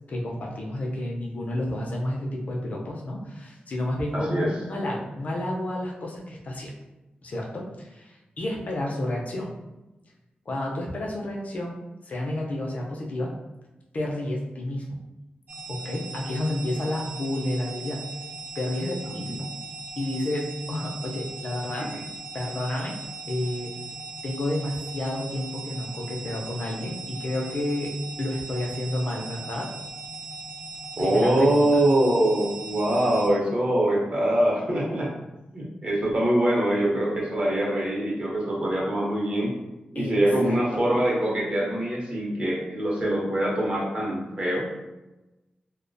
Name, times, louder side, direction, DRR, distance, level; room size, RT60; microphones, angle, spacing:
voice 1, 0.1-6.7 7.2-9.5 10.5-11.8 12.0-13.3 13.9-15.0 15.7-18.0 18.5-19.5 20.0-21.9 22.3-23.0 23.3-23.7 24.2-27.9 28.2-29.7 31.0-31.7 39.9-40.2 40.4-40.6, left 1 dB, 50° left, -1 dB, 0.5 m, -30 dB
voice 2, 4.1-4.5 21.9-22.0 31.0-35.1 35.5-39.5 39.9-44.7, right 1 dB, 40° right, -5 dB, 0.7 m, -23 dB
sound 1, 15.5-33.3, right 3 dB, 85° right, 0.5 m, -39 dB
2.3 x 2.1 x 2.5 m, 1.0 s
wide cardioid pair, 150°, 3 cm